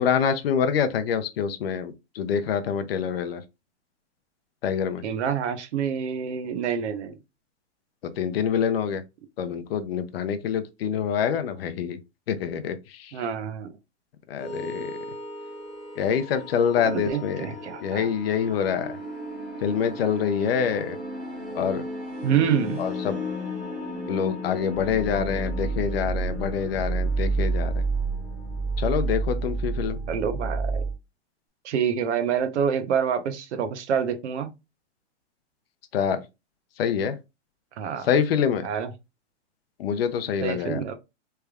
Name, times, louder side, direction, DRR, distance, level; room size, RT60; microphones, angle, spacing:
voice 1, 0.0-3.4 4.6-5.0 8.0-9.0 9.4-12.0 12.3-13.1 14.3-14.9 16.0-17.5 17.8-19.0 19.6-21.0 21.6-21.8 22.8-23.2 24.1-27.8 28.8-30.0 35.9-36.2 36.8-37.2 38.0-38.7 39.8-40.8, left 7 dB, 55° left, 0.5 m, -26 dB
voice 2, 5.0-7.2 13.1-13.7 16.8-18.1 22.2-22.8 30.1-30.8 31.6-34.5 37.8-38.1 38.6-38.9 40.4-40.9, right 8 dB, 70° right, 0.8 m, -27 dB
sound 1, 14.4-30.9, right 2 dB, 15° right, 1.3 m, -31 dB
3.3 x 3.3 x 2.3 m
supercardioid pair, 170°, 36 cm